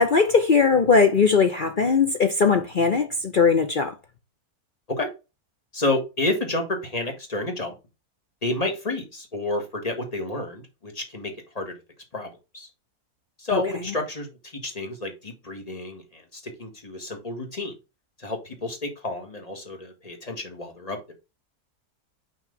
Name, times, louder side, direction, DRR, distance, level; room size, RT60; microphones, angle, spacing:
voice 1, 0.0-3.9 13.5-13.6, left 5 dB, 55° left, 0.5 m, -19 dB
voice 2, 5.7-7.7 8.4-11.7 12.1-12.7 13.4-14.3 14.6-17.7 18.2-21.1, left 2 dB, 25° left, 1.6 m, -30 dB
5.8 x 4.7 x 3.9 m
omnidirectional pair, 1.7 m